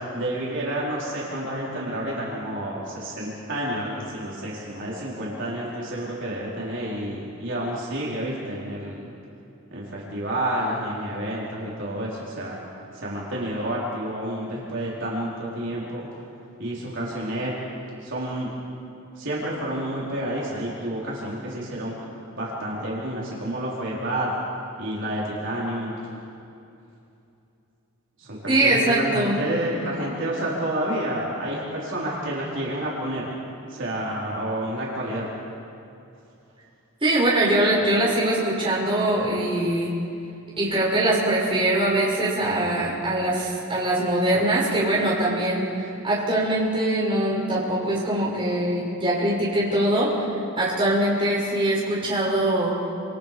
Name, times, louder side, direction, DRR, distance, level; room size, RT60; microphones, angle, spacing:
voice 1, 0.1-9.1 9.7-12.6 12.9-16.1 16.6-17.5 18.0-18.5 19.1-21.9 22.3-24.3 24.8-26.1 28.2-33.2 33.7-35.3, right 1 dB, 55° right, -6 dB, 4.7 m, -29 dB
voice 2, 28.5-29.4 37.0-39.9 40.6-50.1 50.6-52.7, right 1 dB, 25° right, -6 dB, 6.5 m, -22 dB
28.0 x 27.5 x 5.3 m, 2.7 s
head